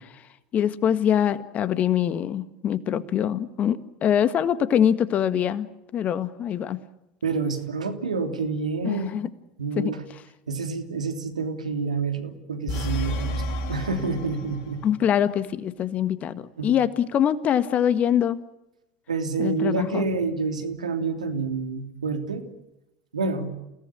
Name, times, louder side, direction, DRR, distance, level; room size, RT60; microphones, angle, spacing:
voice 1, 0.5-5.7 5.9-6.8 8.8-9.3 9.8-9.9 14.8-18.4 19.4-20.1, left 9 dB, 40° left, 13 dB, 1.7 m, -24 dB
voice 2, 7.2-9.2 9.6-10.0 10.5-13.4 13.7-14.8 16.6-16.7 19.1-22.5 23.1-23.5, right 4 dB, 85° right, 6 dB, 3.2 m, -28 dB
sound 1, 12.7-14.9, left 1 dB, 60° left, 4.1 m, -31 dB
29.0 x 18.0 x 8.6 m, 0.92 s
hypercardioid pair, 80°, 4 cm